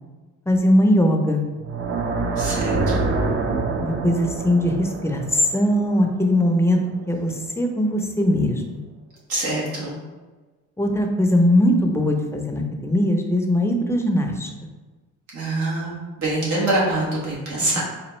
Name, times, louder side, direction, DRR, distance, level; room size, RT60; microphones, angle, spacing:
voice 1, 0.5-1.4 3.8-6.8 7.1-8.8 10.8-14.5, left 1 dB, 10° left, 2 dB, 0.5 m, -20 dB
sound 1, 1.6-6.7, right 3 dB, 40° right, 0.6 m, -26 dB
voice 2, 2.4-2.9 9.3-9.9 15.3-17.8, right 2 dB, 85° right, -6 dB, 1.4 m, -24 dB
4.1 x 2.6 x 3.0 m, 1.3 s
cardioid pair, 90°, 30 cm